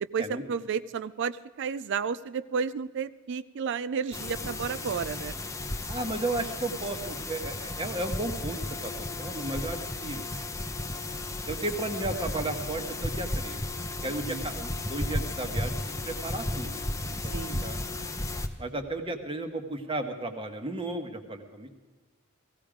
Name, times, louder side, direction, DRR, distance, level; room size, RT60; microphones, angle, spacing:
voice 1, 0.0-5.3 14.0-14.5 17.3-17.6, right 6 dB, 55° right, 15 dB, 0.4 m, -32 dB
sound 1, 4.1-18.5, left 2 dB, 15° left, 0.7 m, -34 dB
voice 2, 5.9-8.9 9.2-10.2 11.5-13.6 14.0-17.3 17.6-17.8 18.6-21.7, right 2 dB, 25° right, 5 dB, 1.3 m, -34 dB
17.0 x 15.5 x 5.0 m, 1.3 s
head